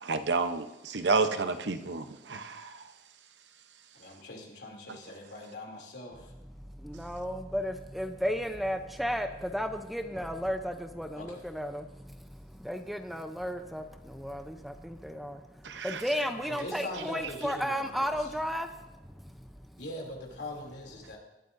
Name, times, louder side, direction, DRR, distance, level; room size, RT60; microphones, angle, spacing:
voice 1, 0.0-2.8 15.6-16.0, right 4 dB, 80° right, 9 dB, 0.8 m, -30 dB
voice 2, 3.9-6.3 11.1-11.4 16.5-18.3 19.8-21.2, left 1 dB, 75° left, 0 dB, 2.9 m, -42 dB
voice 3, 6.7-19.8, equal, ahead, 6 dB, 0.6 m, -34 dB
20.5 x 12.0 x 2.6 m, 0.97 s
head